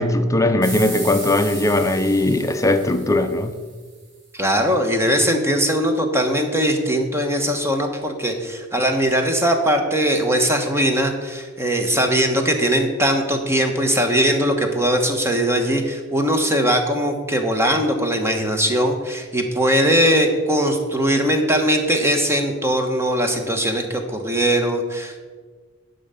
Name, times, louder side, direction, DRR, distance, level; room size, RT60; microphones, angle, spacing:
voice 1, 0.0-3.5, left 1 dB, 15° left, 8 dB, 0.6 m, -19 dB
sound 1, 0.6-3.9, right 2 dB, 60° right, 3.7 m, -35 dB
voice 2, 4.3-25.2, equal, 15° right, 4 dB, 1.1 m, -20 dB
11.0 x 5.4 x 6.9 m, 1.4 s
head